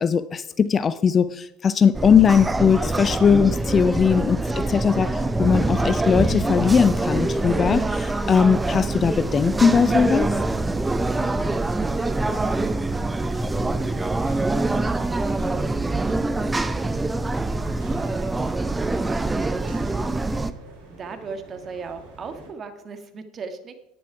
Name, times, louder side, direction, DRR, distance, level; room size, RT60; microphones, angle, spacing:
voice 1, 0.0-10.3, left 6 dB, 30° left, 16 dB, 0.5 m, -19 dB
sound 1, 1.9-20.5, right 2 dB, 15° right, 0.6 m, -24 dB
voice 2, 10.8-17.0 17.8-20.5 20.9-23.8, right 5 dB, 35° right, 7 dB, 1.7 m, -41 dB
sound 2, 11.2-22.5, right 3 dB, 70° right, 4.3 m, -48 dB
11.0 x 9.5 x 4.7 m, 0.83 s
figure-of-eight pair, 70°, 0 cm